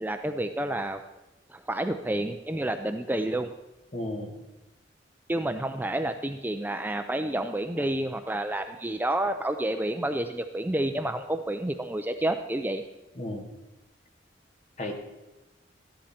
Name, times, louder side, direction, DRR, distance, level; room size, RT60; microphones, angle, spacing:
voice 1, 0.0-1.0 1.5-3.5 5.3-12.8, right 1 dB, 10° right, 7 dB, 0.4 m, -29 dB
voice 2, 3.9-4.4 7.8-7.9 13.1-13.5 14.8-14.9, left 1 dB, 40° left, 2 dB, 1.7 m, -34 dB
14.0 x 10.0 x 4.3 m, 1.0 s
head